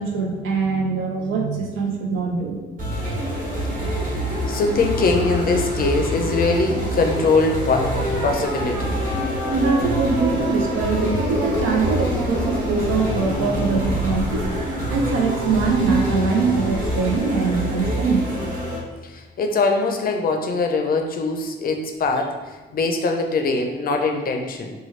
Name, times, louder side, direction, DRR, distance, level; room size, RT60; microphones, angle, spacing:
voice 1, 0.0-2.6 9.5-14.5 14.9-18.2, right 4 dB, 80° right, 2 dB, 0.6 m, -22 dB
sound 1, 2.8-18.8, equal, 45° right, 1.3 m, -26 dB
voice 2, 4.5-9.0 19.1-22.3 22.7-24.7, left 3 dB, 50° left, 4 dB, 0.5 m, -22 dB
sound 2, 7.9-17.1, equal, 20° right, 1.1 m, -30 dB
3.2 x 2.2 x 3.1 m, 1.2 s
cardioid pair, 90°, 20 cm